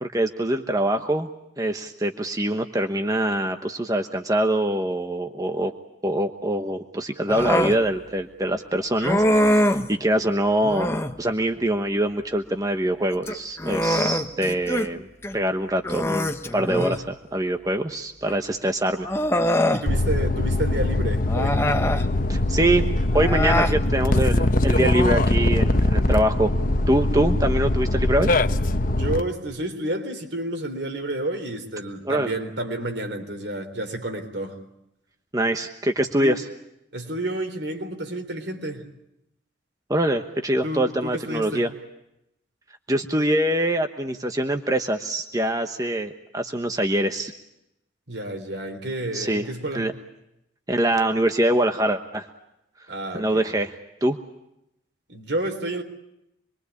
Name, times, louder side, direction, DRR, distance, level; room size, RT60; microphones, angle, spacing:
voice 1, 0.0-1.3 1.6-5.7 6.0-10.9 11.2-15.1 15.3-19.1 22.3-22.9 23.1-26.5 26.9-28.3 32.0-32.3 35.3-36.5 39.9-41.7 42.9-47.3 49.1-49.4 49.7-49.9 50.7-52.3 53.1-53.7 54.0-54.2, right 1 dB, 20° right, 1.1 m, -24 dB
Human voice, 7.3-7.8 9.0-9.9 10.6-11.2 13.1-14.9 15.2-15.4 15.8-17.1 18.3-18.4 19.0-19.9 21.2-22.1 23.1-23.8, left 1 dB, 15° left, 1.1 m, -23 dB
voice 2, 19.7-21.6 28.9-34.6 36.2-36.4 36.9-38.9 40.6-41.7 48.1-49.9 52.9-53.4 55.1-55.8, right 1 dB, 65° right, 3.8 m, -30 dB
sound 1, 19.9-29.2, left 1 dB, 45° left, 1.0 m, -22 dB
26.5 x 23.0 x 8.4 m
head